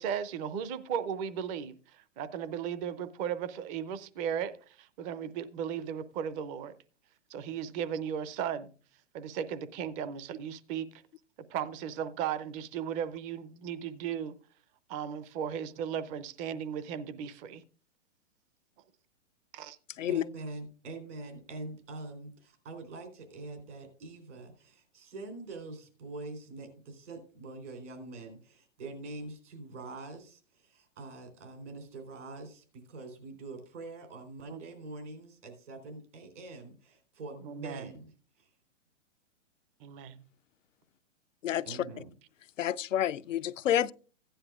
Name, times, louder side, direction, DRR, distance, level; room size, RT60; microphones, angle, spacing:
voice 1, 0.0-6.7 7.3-8.7 9.1-10.9 11.5-14.4 14.9-17.6 19.5-19.8 34.5-34.6 37.4-37.9 39.8-40.2, right 8 dB, 20° right, 0.5 m, -36 dB
voice 2, 20.1-38.1 38.4-38.5 41.7-42.1, right 2 dB, 70° right, 3.7 m, -44 dB
voice 3, 41.4-41.8 42.6-43.9, left 11 dB, 85° left, 0.5 m, -29 dB
15.0 x 10.0 x 2.4 m
hypercardioid pair, 125°, 37 cm